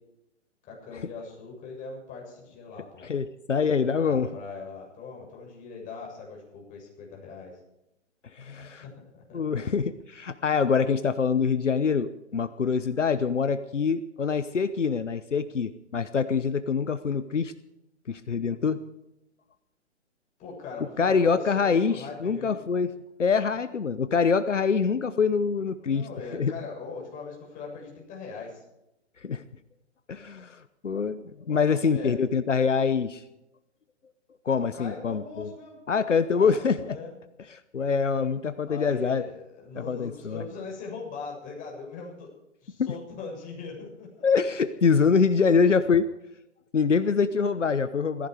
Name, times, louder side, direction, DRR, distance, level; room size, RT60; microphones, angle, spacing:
voice 1, 0.7-3.1 3.8-7.5 8.8-9.4 20.4-22.6 25.8-28.6 31.5-32.1 34.5-35.8 36.3-37.1 38.7-42.3 42.6-44.1, left 4 dB, 20° left, -1 dB, 7.3 m, -40 dB
voice 2, 3.0-4.3 8.3-8.8 9.3-17.5 18.1-18.8 21.0-22.9 23.2-26.5 29.2-29.4 30.1-33.2 34.4-35.5 35.9-37.0 37.5-39.2 39.7-40.4 42.8-42.9 44.2-46.1 46.7-48.3, left 5 dB, 80° left, 13 dB, 1.0 m, -25 dB
18.0 x 15.5 x 4.9 m, 0.88 s
figure-of-eight pair, 130°, 36 cm